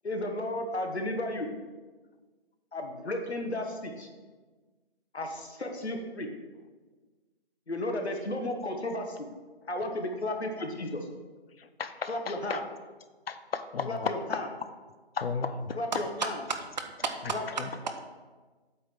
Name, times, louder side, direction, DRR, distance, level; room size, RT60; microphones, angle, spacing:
voice 1, 0.0-1.5 2.7-4.1 5.1-6.3 7.7-9.3 9.7-11.1 12.1-12.6 13.8-14.5 15.7-16.3 17.3-17.4, left 1 dB, 90° left, 4 dB, 1.5 m, -33 dB
voice 2, 11.8-12.6 13.3-14.4 15.2-15.8, left 5 dB, 65° left, 11 dB, 0.7 m, -33 dB
voice 3, 15.9-18.0, right 4 dB, 45° right, 6 dB, 0.8 m, -35 dB
8.4 x 3.8 x 6.2 m, 1.3 s
figure-of-eight pair, 155°, 32 cm